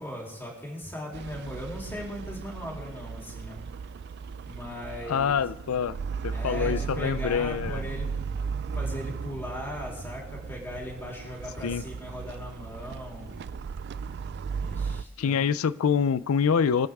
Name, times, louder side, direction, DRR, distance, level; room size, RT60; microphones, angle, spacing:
voice 1, 0.0-3.6 4.4-5.4 6.3-8.4 8.7-13.3 14.6-15.5, equal, 10° left, -3 dB, 3.1 m, -38 dB
sound 1, 1.1-15.0, right 5 dB, 50° right, 0.3 m, -36 dB
voice 2, 5.1-6.0 6.2-7.8 11.6-11.9 15.2-16.9, left 7 dB, 90° left, 16 dB, 0.4 m, -25 dB
24.5 x 8.7 x 3.6 m, 1.0 s
head